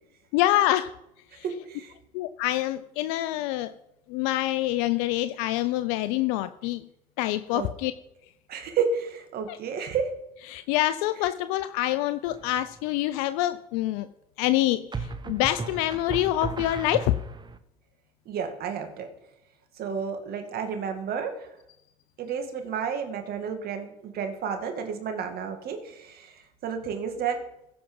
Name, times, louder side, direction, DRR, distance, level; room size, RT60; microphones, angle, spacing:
voice 1, 0.3-0.9 1.3-1.4 2.1-3.7 4.1-6.9 7.2-7.9 9.5-9.6 10.5-14.1 14.4-17.1, left 15 dB, 75° left, 12 dB, 0.5 m, -26 dB
voice 2, 1.4-1.9 7.5-7.7 8.5-10.1 18.3-19.1 19.8-21.3 22.2-26.3 26.6-27.4, right 6 dB, 55° right, 5 dB, 2.2 m, -31 dB
sound 1, 12.3-12.8 14.9-17.6, right 4 dB, 25° right, 1.0 m, -36 dB
15.0 x 6.0 x 5.4 m, 0.83 s
hypercardioid pair, 65°, 19 cm